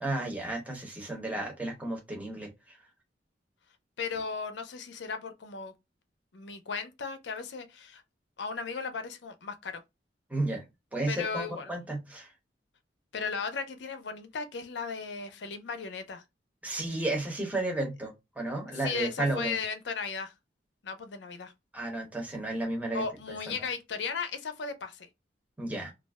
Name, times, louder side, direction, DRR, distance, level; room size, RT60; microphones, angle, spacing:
voice 1, 0.0-2.8 10.3-10.6 10.9-12.3 16.6-19.6 21.7-23.0 25.6-25.9, right 2 dB, 10° right, 0.9 m, -33 dB
voice 2, 4.0-5.7 6.3-8.0 8.4-9.8 11.1-11.7 13.1-16.2 18.7-20.3 20.8-21.5 22.9-25.1, left 5 dB, 80° left, 0.5 m, -36 dB
2.4 x 2.1 x 3.3 m
head